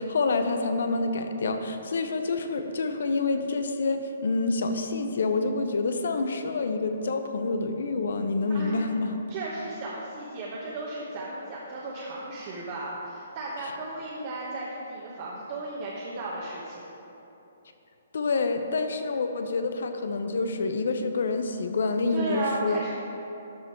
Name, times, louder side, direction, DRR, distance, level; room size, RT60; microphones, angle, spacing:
voice 1, 0.0-9.2 13.6-13.7 18.1-22.8, left 3 dB, 70° left, 7 dB, 0.8 m, -27 dB
voice 2, 8.5-8.9 9.3-16.8 22.1-22.9, right 2 dB, 40° right, -5 dB, 1.2 m, -35 dB
12.5 x 5.2 x 4.6 m, 3.0 s
hypercardioid pair, 160°, 0 cm